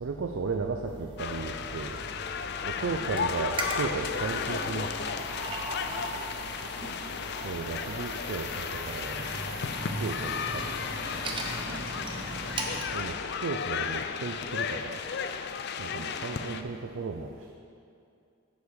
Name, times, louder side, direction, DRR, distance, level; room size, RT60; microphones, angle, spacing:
voice 1, 0.0-2.0 2.6-5.3 7.4-9.2 10.0-10.8 12.9-15.0 15.8-17.5, right 4 dB, 65° right, 3 dB, 0.4 m, -35 dB
sound 1, 0.8-12.8, right 2 dB, 25° right, 0.6 m, -39 dB
sound 2, 1.2-16.6, left 6 dB, 50° left, 0.3 m, -34 dB
voice 2, 6.3-7.0 11.6-12.4 15.9-16.6, right 3 dB, 85° right, -4 dB, 2.1 m, -47 dB
8.2 x 5.3 x 6.4 m, 2.5 s
head